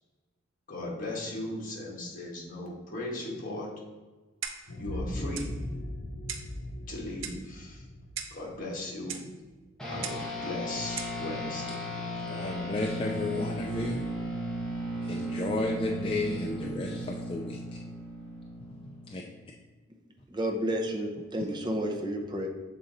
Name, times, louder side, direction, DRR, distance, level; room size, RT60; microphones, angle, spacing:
voice 1, 0.7-3.7 4.8-5.7 6.9-7.9 8.3-9.2 9.8-11.8, left 1 dB, 45° left, -3 dB, 1.8 m, -37 dB
Clock, 4.4-4.8 5.4-5.5 6.3-6.6 7.2-7.5 8.2-8.4 9.1-9.3 10.0-10.3 11.0-11.2, right 7 dB, 70° right, 0.6 m, -38 dB
sound 1, 4.7-9.4, left 1 dB, 70° left, 0.8 m, -39 dB
sound 2, 9.8-19.5, equal, 5° left, 1.1 m, -36 dB
voice 2, 12.3-14.1 15.0-17.8 18.7-19.2 21.4-21.5, left 2 dB, 25° left, 0 dB, 0.4 m, -33 dB
voice 3, 20.3-22.5, equal, 25° right, 2 dB, 0.7 m, -31 dB
7.2 x 3.8 x 4.1 m, 1.2 s
head